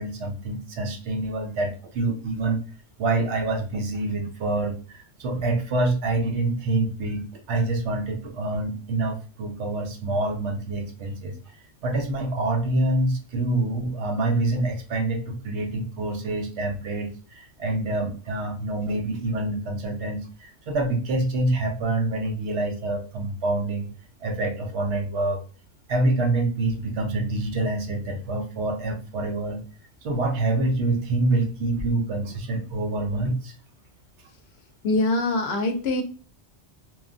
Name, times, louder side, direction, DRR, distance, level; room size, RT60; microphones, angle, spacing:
voice 1, 0.0-2.6 3.0-11.3 11.8-23.9 24.2-25.4 25.9-29.6 30.0-33.5, right 2 dB, 70° right, 3 dB, 1.0 m, -26 dB
voice 2, 34.8-36.0, left 2 dB, 65° left, 5 dB, 0.7 m, -23 dB
3.1 x 2.3 x 2.4 m, 0.38 s
omnidirectional pair, 1.2 m